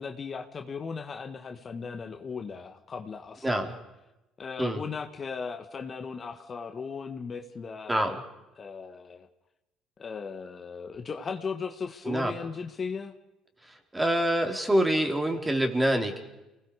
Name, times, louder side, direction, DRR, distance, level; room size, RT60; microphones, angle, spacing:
voice 1, 0.0-3.8 4.4-8.2 8.6-9.3 10.0-13.1, left 5 dB, 40° left, 6 dB, 1.7 m, -37 dB
voice 2, 3.4-3.7 4.6-4.8 7.9-8.2 12.0-12.3 13.6-16.2, right 1 dB, 15° right, 4 dB, 4.1 m, -26 dB
29.0 x 20.0 x 5.0 m, 0.96 s
hypercardioid pair, 60°, 0 cm